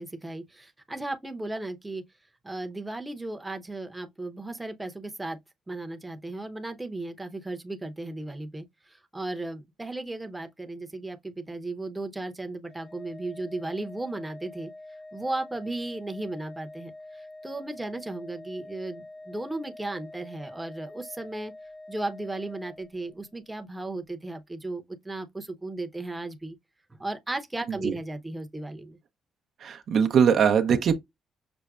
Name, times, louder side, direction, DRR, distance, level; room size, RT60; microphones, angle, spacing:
voice 1, 0.0-2.0 2.4-5.4 5.7-14.7 15.1-21.5 21.9-26.6 27.0-29.0, right 2 dB, 10° right, 0.7 m, -35 dB
Organ, 12.7-23.4, left 2 dB, 30° left, 0.7 m, -46 dB
voice 2, 29.6-31.0, right 7 dB, 65° right, 0.6 m, -22 dB
5.9 x 2.1 x 2.3 m
cardioid pair, 90°, 0 cm